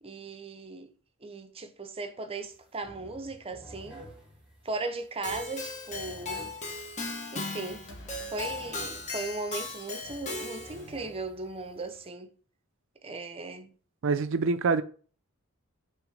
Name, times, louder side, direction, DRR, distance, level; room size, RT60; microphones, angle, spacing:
voice 1, 0.0-0.9 1.2-4.1 4.6-6.5 7.3-7.8 8.3-12.3 13.0-13.7, right 3 dB, 25° right, 0.7 m, -37 dB
sound 1, 2.4-2.6 2.8-12.1, right 1 dB, 5° right, 1.5 m, -51 dB
Keyboard (musical), 5.2-10.9, left 3 dB, 35° left, 1.1 m, -37 dB
sound 2, 7.9-10.8, left 1 dB, 55° left, 1.3 m, -52 dB
voice 2, 14.0-14.8, right 4 dB, 65° right, 0.5 m, -25 dB
6.0 x 3.2 x 5.0 m
head